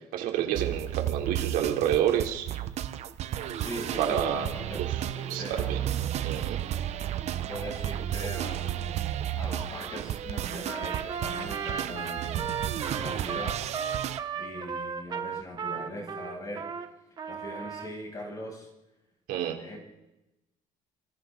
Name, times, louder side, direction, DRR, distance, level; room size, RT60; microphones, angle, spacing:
voice 1, 0.1-2.5 4.0-4.4 5.3-5.4 5.7-5.8 6.2-6.6 19.3-19.6, right 10 dB, 80° right, 2 dB, 3.5 m, -28 dB
sound 1, 0.6-14.2, right 11 dB, 50° right, 1.0 m, -33 dB
voice 2, 3.6-4.9 5.2-6.0 7.5-9.1 9.3-13.7 14.4-16.7 17.3-18.7 19.6-19.8, equal, 25° left, 0 dB, 7.7 m, -40 dB
Trumpet, 10.7-16.9 17.2-17.9, right 6 dB, 30° right, 1.4 m, -35 dB
27.5 x 26.0 x 4.0 m, 0.94 s
cardioid pair, 165°, 15 cm